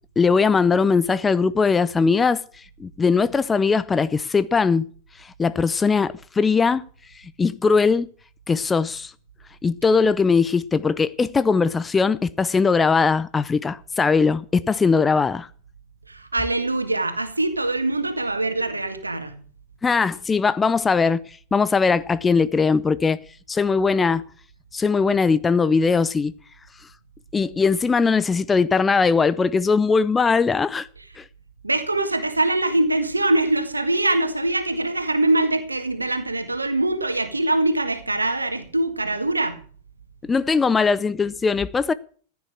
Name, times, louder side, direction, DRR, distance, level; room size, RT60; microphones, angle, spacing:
voice 1, 0.2-4.9 5.2-6.8 7.1-8.1 8.5-9.1 9.6-15.5 19.8-23.2 23.5-24.2 24.7-26.3 26.8-26.9 27.3-30.9 31.2-31.3 40.2-41.9, left 5 dB, 15° left, 0.6 m, -20 dB
voice 2, 16.1-19.4 31.6-39.6, right 2 dB, 80° right, 2.0 m, -23 dB
15.0 x 9.4 x 6.3 m
figure-of-eight pair, 90°, 0 cm